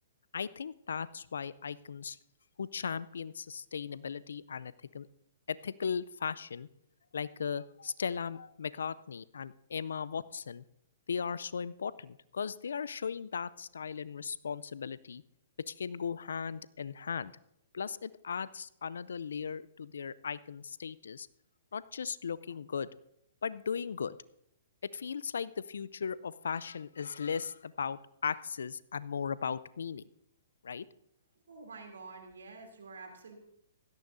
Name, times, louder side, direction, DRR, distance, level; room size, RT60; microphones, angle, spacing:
voice 1, 0.3-2.2 2.6-5.1 5.5-6.7 7.1-10.6 11.1-15.2 15.7-17.3 17.7-21.3 21.7-22.9 23.4-24.2 24.8-30.0 30.6-30.9, left 6 dB, 75° left, 19 dB, 0.5 m, -37 dB
voice 2, 31.5-33.4, right 4 dB, 80° right, 3 dB, 3.0 m, -48 dB
16.5 x 12.5 x 2.7 m, 0.77 s
hypercardioid pair, 125°, 0 cm